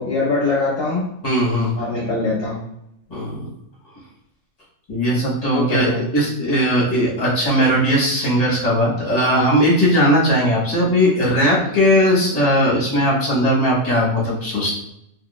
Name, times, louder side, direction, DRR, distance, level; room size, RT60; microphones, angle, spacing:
voice 1, 0.0-1.0 1.8-2.7 5.5-6.0, left 3 dB, 45° left, -5 dB, 0.9 m, -22 dB
voice 2, 1.2-1.7 3.1-3.5 4.9-14.7, equal, 30° left, -5 dB, 1.2 m, -18 dB
3.7 x 2.7 x 2.4 m, 0.76 s
omnidirectional pair, 1.6 m